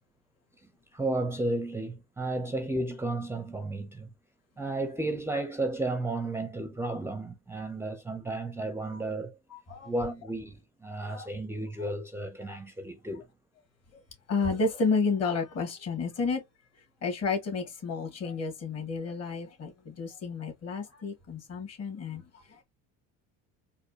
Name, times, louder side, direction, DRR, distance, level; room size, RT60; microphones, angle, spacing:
voice 1, 0.6-4.1 4.6-13.3, right 2 dB, 5° right, 0.5 m, -33 dB
voice 2, 14.3-16.4 17.0-22.6, left 4 dB, 45° left, 1.8 m, -31 dB
4.2 x 2.3 x 2.7 m
supercardioid pair, 105°, 34 cm